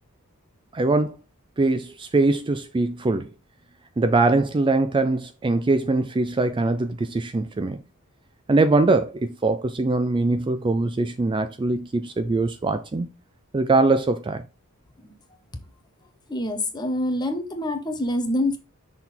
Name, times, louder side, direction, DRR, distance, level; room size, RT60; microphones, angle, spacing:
voice 1, 0.7-1.1 1.6-3.3 4.0-7.8 8.5-13.1 13.5-14.4, right 3 dB, 20° right, 0.4 m, -22 dB
voice 2, 16.3-18.6, left 1 dB, 20° left, 0.9 m, -26 dB
6.0 x 3.8 x 4.3 m
head